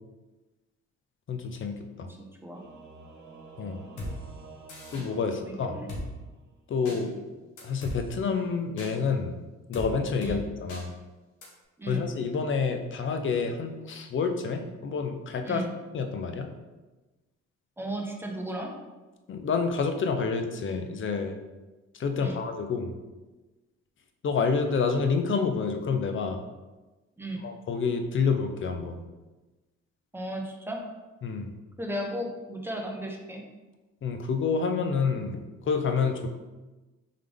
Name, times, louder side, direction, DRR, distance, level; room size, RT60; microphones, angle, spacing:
voice 1, 1.3-2.1 3.6-3.8 4.9-5.8 6.7-7.2 7.6-9.4 9.7-10.9 11.9-15.6 15.9-16.5 19.3-21.4 21.9-22.9 24.2-26.4 27.4-29.0 31.2-31.5 34.0-36.3, left 5 dB, 40° left, 6 dB, 0.6 m, -28 dB
voice 2, 2.2-2.6 5.4-5.9 10.2-10.4 11.8-12.0 15.4-15.7 17.8-18.7 22.1-22.4 27.2-27.5 30.1-30.8 31.8-33.4, right 1 dB, 10° right, 1 dB, 0.8 m, -35 dB
Singing / Musical instrument, 2.5-6.6, right 3 dB, 80° right, 1.1 m, -50 dB
Drum kit, 4.0-4.1 4.7-5.1 5.9-6.0 6.9-7.0 7.6-8.0 8.8-8.9 9.7-9.9 10.2-10.4 10.7-10.8 11.4-11.5, left 1 dB, 85° left, 1.2 m, -36 dB
3.7 x 3.3 x 3.4 m, 1.2 s
cardioid pair, 90°, 30 cm